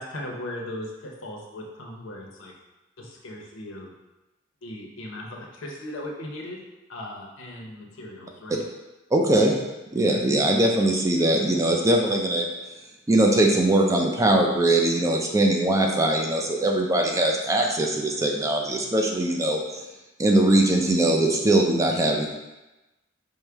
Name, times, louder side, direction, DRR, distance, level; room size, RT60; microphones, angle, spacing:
voice 1, 0.0-2.5 3.0-3.9 4.6-6.6 6.9-8.6, left 1 dB, 80° left, -1 dB, 0.7 m, -38 dB
voice 2, 9.1-9.5 9.9-12.5 13.1-19.6 20.2-22.3, right 1 dB, 15° right, 1 dB, 0.4 m, -21 dB
4.6 x 2.1 x 3.4 m, 1.0 s
head